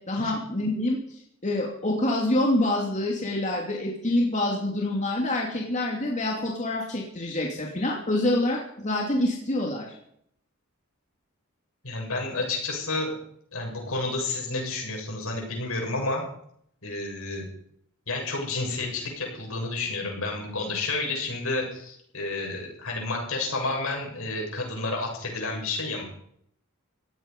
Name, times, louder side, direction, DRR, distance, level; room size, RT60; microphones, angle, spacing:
voice 1, 0.1-1.0 1.4-10.0, left 1 dB, 35° left, -1 dB, 2.8 m, -26 dB
voice 2, 11.8-13.1 13.5-16.2 16.8-17.5 18.1-26.0, left 3 dB, 75° left, 0 dB, 7.5 m, -30 dB
17.5 x 15.0 x 5.5 m, 0.69 s
head